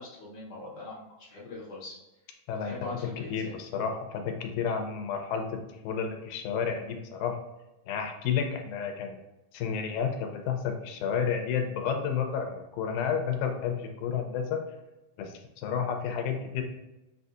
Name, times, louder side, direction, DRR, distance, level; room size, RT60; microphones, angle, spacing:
voice 1, 0.0-2.0 2.6-3.6, left 2 dB, 65° left, -5 dB, 1.9 m, -41 dB
voice 2, 3.3-7.4 7.9-9.2 9.5-14.6 15.2-16.6, left 7 dB, 85° left, 4 dB, 2.0 m, -31 dB
6.3 x 2.7 x 2.4 m, 0.99 s
omnidirectional pair, 3.5 m